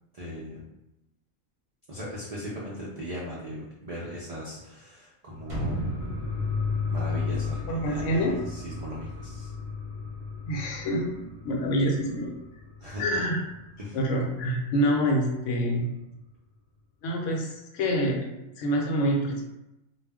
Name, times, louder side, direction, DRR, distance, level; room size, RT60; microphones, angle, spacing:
voice 1, 0.1-0.7 1.9-5.8 6.9-9.5 12.8-13.2 13.8-14.0, equal, 75° right, -7 dB, 0.3 m, -38 dB
sound 1, 5.3-14.4 14.7-14.8, left 4 dB, 25° left, 0.6 m, -35 dB
sound 2, 5.5-8.3 8.6-8.7, right 1 dB, 30° right, 0.7 m, -35 dB
voice 2, 7.7-8.3 10.5-12.3 13.0-13.4 13.9-15.8 17.0-18.3 18.6-19.4, equal, 75° left, 0 dB, 0.9 m, -26 dB
2.3 x 2.0 x 3.4 m, 0.93 s
omnidirectional pair, 1.4 m